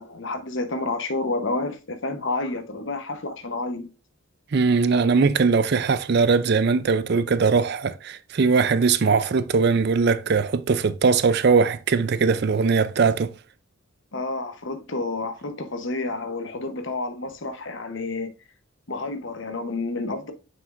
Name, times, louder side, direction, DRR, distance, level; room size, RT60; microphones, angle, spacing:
voice 1, 0.0-3.9 14.1-18.3 18.9-20.3, left 2 dB, 60° left, 1.0 m, -29 dB
voice 2, 4.5-13.3, right 5 dB, 50° right, 0.4 m, -20 dB
7.8 x 5.9 x 2.5 m
head